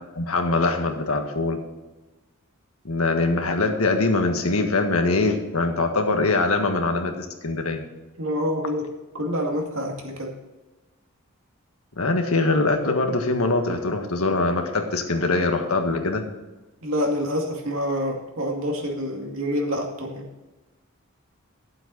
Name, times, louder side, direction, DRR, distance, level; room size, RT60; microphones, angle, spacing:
voice 1, 0.2-1.6 2.9-7.8 12.0-16.2, left 3 dB, 85° left, 4 dB, 1.6 m, -23 dB
voice 2, 8.2-8.9 9.1-10.4 16.8-20.3, equal, 70° right, 1 dB, 2.3 m, -27 dB
12.5 x 7.7 x 4.0 m, 1.1 s
head